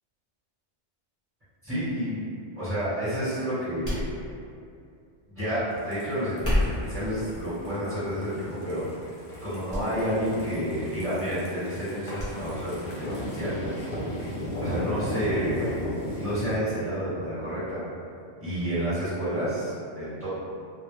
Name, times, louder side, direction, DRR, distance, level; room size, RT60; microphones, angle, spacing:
voice 1, 1.6-4.1 5.3-8.8 9.4-13.1 13.3-13.5 14.6-15.9 16.2-17.8 18.4-20.3, equal, 10° right, -13 dB, 1.1 m, -30 dB
sound 1, 3.8-4.6 6.3-7.0 7.8-8.1 8.6-8.7 9.7-9.9 10.2-10.3 12.2-12.3 12.7-12.8, left 1 dB, 15° left, 0.8 m, -29 dB
sound 2, 5.7-16.5, equal, 50° left, 0.7 m, -36 dB
2.1 x 2.1 x 3.1 m, 2.4 s
omnidirectional pair, 1.2 m